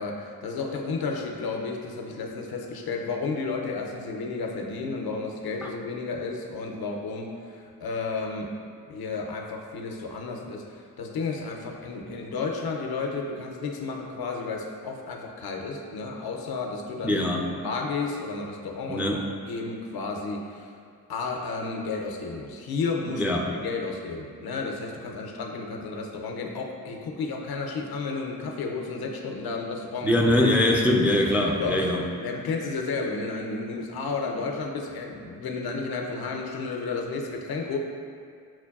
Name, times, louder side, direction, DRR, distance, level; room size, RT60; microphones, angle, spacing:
voice 1, 0.0-20.7 21.1-23.2 23.5-30.2 31.6-37.8, left 4 dB, 65° left, 2 dB, 0.6 m, -32 dB
voice 2, 17.0-17.5 18.9-19.2 23.2-23.4 30.0-32.0, left 1 dB, 5° right, 0 dB, 0.3 m, -22 dB
5.9 x 2.2 x 2.3 m, 2.2 s
supercardioid pair, 40°, 41 cm